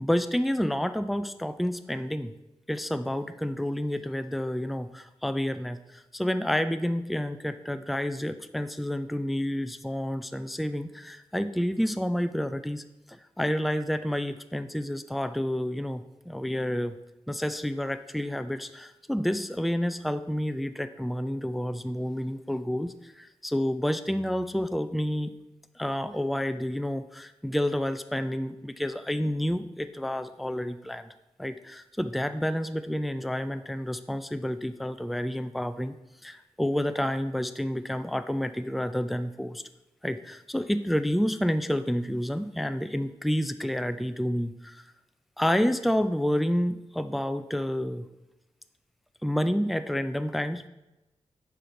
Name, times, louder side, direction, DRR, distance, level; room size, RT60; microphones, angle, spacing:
voice 1, 0.0-2.3 2.7-12.8 13.4-16.9 17.3-25.3 25.8-31.1 31.4-36.0 36.2-39.6 40.0-44.8 45.4-48.1 49.2-50.7, equal, ahead, 10 dB, 0.3 m, -29 dB
5.8 x 5.1 x 3.8 m, 0.97 s
cardioid pair, 65°, 11 cm